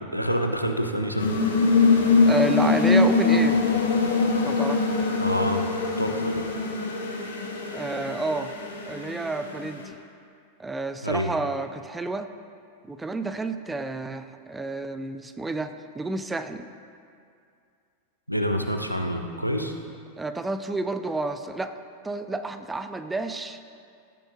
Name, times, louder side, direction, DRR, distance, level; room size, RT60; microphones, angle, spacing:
voice 1, 0.1-1.4 5.2-5.6 6.0-6.4 11.0-11.3 18.3-19.7, equal, 90° left, 4 dB, 0.6 m, -27 dB
sound 1, 1.2-9.9, left 4 dB, 70° left, 1.2 m, -23 dB
voice 2, 2.2-3.6 4.4-4.9 7.7-8.5 8.9-10.0 10.6-12.3 12.9-16.7 20.2-21.7 22.0-23.6, right 2 dB, 10° right, 10 dB, 0.4 m, -30 dB
14.5 x 7.0 x 2.7 m, 2.3 s
figure-of-eight pair, 90°, 0 cm